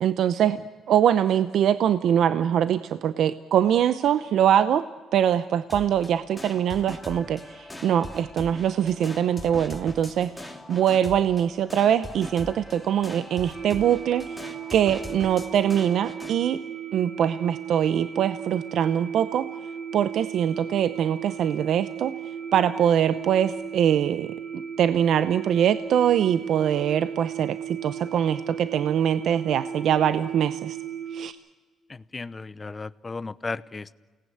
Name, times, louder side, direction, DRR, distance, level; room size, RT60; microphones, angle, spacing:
voice 1, 0.0-0.6 0.9-4.8 5.1-16.6 16.9-19.5 19.9-22.1 22.5-30.8 31.1-31.4, right 9 dB, 75° right, 13 dB, 0.7 m, -23 dB
sound 1, 5.7-16.4, left 1 dB, 5° left, 3.1 m, -41 dB
sound 2, 13.5-31.3, right 8 dB, 45° right, 3.1 m, -36 dB
voice 2, 31.9-33.9, left 3 dB, 25° left, 17 dB, 0.8 m, -35 dB
29.0 x 18.5 x 9.3 m, 1.4 s
cardioid pair, 90°, 0 cm